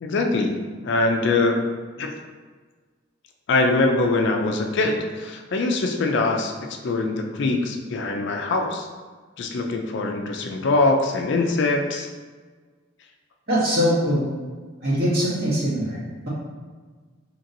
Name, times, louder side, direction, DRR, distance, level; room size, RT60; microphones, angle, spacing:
voice 1, 0.0-1.6 2.0-2.1 3.5-6.5 6.8-8.9 9.4-12.1, left 2 dB, 60° left, 3 dB, 0.4 m, -23 dB
voice 2, 13.5-14.3 14.8-16.0, equal, 50° right, -8 dB, 1.1 m, -22 dB
2.9 x 2.7 x 2.6 m, 1.5 s
head